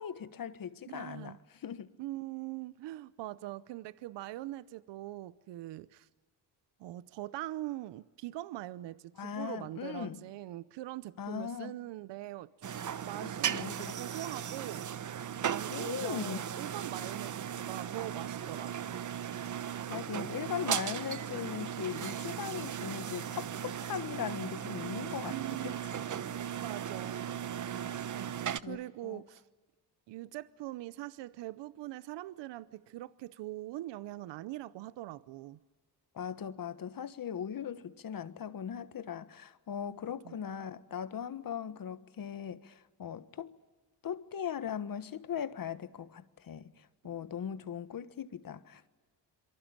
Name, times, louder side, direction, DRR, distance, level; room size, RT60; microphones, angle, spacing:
voice 1, 0.0-1.4 1.6-1.9 9.2-10.2 11.2-11.8 13.5-14.0 15.7-16.4 19.6-26.0 28.6-29.2 36.1-43.5 44.0-48.9, left 8 dB, 55° left, 1.4 m, -39 dB
voice 2, 0.9-1.4 2.0-6.1 6.8-12.5 13.0-14.8 15.5-19.0 25.3-25.9 26.6-27.3 28.2-29.4 30.1-35.6 40.2-40.4, right 16 dB, 85° right, 0.8 m, -42 dB
sound 1, 12.6-28.6, right 9 dB, 45° right, 0.9 m, -37 dB
27.0 x 23.5 x 8.8 m
cardioid pair, 75°, 41 cm